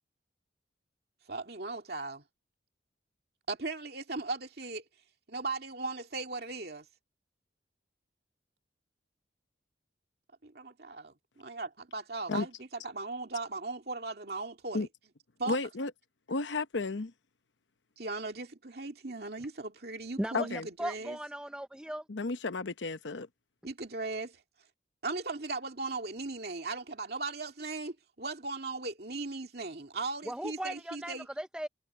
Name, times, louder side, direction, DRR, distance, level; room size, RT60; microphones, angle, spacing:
voice 1, 1.3-2.2 3.5-4.8 5.3-6.9 10.4-14.9 15.4-15.8 18.0-21.2 23.6-24.4 25.0-31.3, right 3 dB, 55° right, 2.5 m, -38 dB
voice 2, 15.5-15.9 16.3-17.1 20.3-20.7 22.1-23.3, left 3 dB, 80° left, 0.9 m, -32 dB
voice 3, 20.8-22.0 30.3-31.7, right 1 dB, 5° right, 0.5 m, -37 dB
head